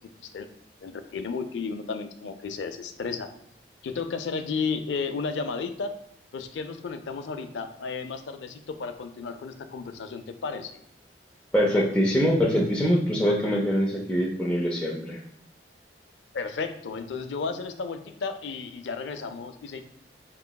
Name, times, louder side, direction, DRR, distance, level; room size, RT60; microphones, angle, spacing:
voice 1, 0.8-3.3 3.8-5.9 6.3-10.8 16.3-19.8, left 5 dB, 90° left, 9 dB, 0.4 m, -33 dB
voice 2, 11.5-15.2, equal, 5° left, -4 dB, 0.5 m, -23 dB
5.6 x 2.9 x 2.2 m, 0.74 s
head